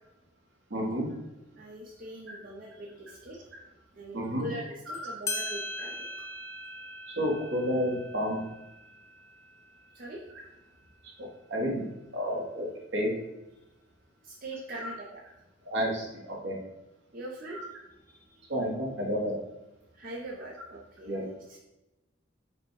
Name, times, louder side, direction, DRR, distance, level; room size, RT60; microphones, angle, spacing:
voice 1, 0.7-1.1 2.3-2.4 4.1-4.5 4.9-5.2 7.2-8.4 11.2-11.9 12.1-12.7 12.9-13.1 14.7-14.9 15.6-16.6 17.5-17.7 18.5-19.3 21.0-21.2, equal, 75° right, -1 dB, 1.2 m, -31 dB
voice 2, 1.6-3.5 3.9-6.0 9.9-10.2 14.2-15.2 17.1-17.6 18.1-18.5 19.9-21.6, right 1 dB, 45° right, -4 dB, 0.7 m, -42 dB
sound 1, 4.9-5.0 5.3-10.4, left 2 dB, 15° left, 0.4 m, -40 dB
5.0 x 2.3 x 4.6 m, 0.96 s
head